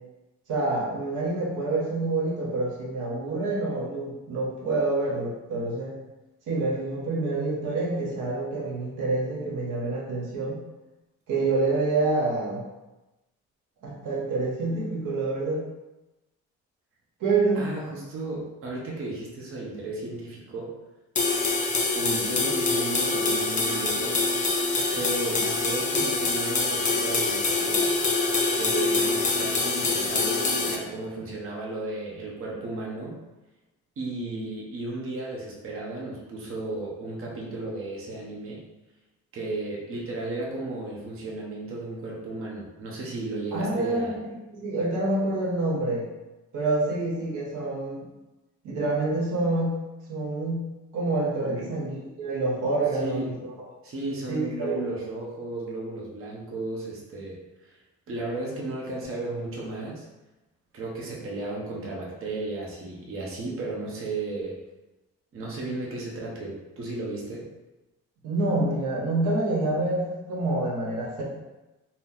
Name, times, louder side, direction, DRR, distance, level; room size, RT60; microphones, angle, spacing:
voice 1, 0.5-6.0 6.5-10.6 11.3-12.6 13.8-15.6 17.2-17.6 43.5-44.1 44.5-46.1 46.5-48.0 48.6-49.8 50.1-53.5 54.3-54.7 68.2-71.2, right 2 dB, 80° right, -3 dB, 0.9 m, -27 dB
voice 2, 17.5-20.8 21.9-24.2 24.9-27.9 28.5-33.2 34.0-38.6 39.3-44.2 51.4-51.7 53.0-53.4 53.8-57.8 58.1-60.1 60.7-64.6 65.3-67.5, right 2 dB, 45° right, -3 dB, 0.7 m, -34 dB
sound 1, 21.2-30.8, left 3 dB, 25° left, 0.5 m, -25 dB
2.6 x 2.0 x 3.7 m, 1.0 s
cardioid pair, 90°, 30 cm